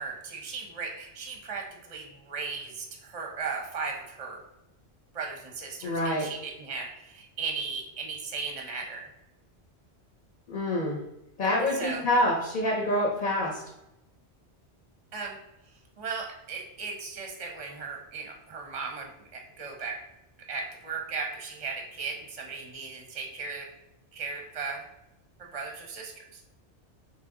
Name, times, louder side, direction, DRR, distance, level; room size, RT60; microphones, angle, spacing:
voice 1, 0.0-4.4 5.1-9.1 11.7-12.0 15.1-15.4 15.7-20.0 20.5-23.6 24.1-24.8 25.4-26.4, right 4 dB, 40° right, 1 dB, 0.6 m, -37 dB
voice 2, 5.8-6.3 10.5-11.0 11.4-13.6, left 1 dB, 45° left, -2 dB, 0.8 m, -26 dB
3.8 x 2.9 x 3.6 m, 0.87 s
omnidirectional pair, 1.2 m